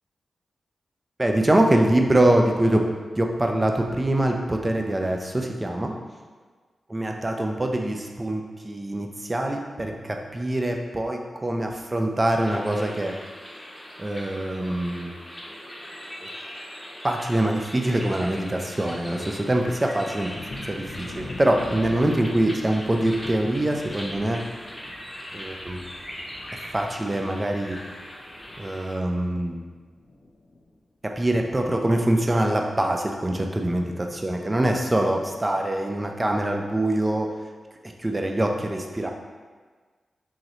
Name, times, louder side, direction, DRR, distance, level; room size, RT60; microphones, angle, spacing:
voice 1, 1.2-2.8 3.1-5.9 6.9-13.1 14.0-15.1 16.2-16.3 17.0-20.3 20.6-24.4 25.3-25.8 26.7-27.8 28.6-29.6 31.0-37.3 37.8-39.1, right 1 dB, 20° right, 3 dB, 0.4 m, -24 dB
sound 1, 12.4-28.9, equal, 10° left, 0.8 m, -40 dB
Thunder, 20.3-29.7 30.0-30.7 31.1-31.2 31.6-31.8, left 2 dB, 60° left, 0.5 m, -43 dB
3.9 x 3.0 x 2.9 m, 1.4 s
cardioid pair, 75°, 0 cm